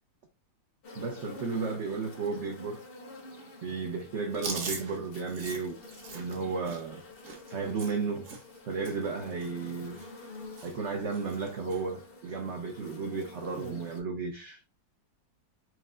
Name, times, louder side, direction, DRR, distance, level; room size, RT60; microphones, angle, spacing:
sound 1, 0.8-14.0, left 2 dB, 55° left, 0.6 m, -49 dB
voice 1, 1.0-2.8 3.6-5.8 6.1-7.0 7.5-8.4 8.7-10.0 10.6-14.6, right 4 dB, 80° right, 0.6 m, -33 dB
Chewing mastication, 4.3-8.6 8.8-9.1 9.4-10.3 10.6-10.9 11.1-11.8 12.2-12.4 13.4-13.8, right 4 dB, 55° right, 1.0 m, -42 dB
4.6 x 2.1 x 3.6 m
omnidirectional pair, 2.0 m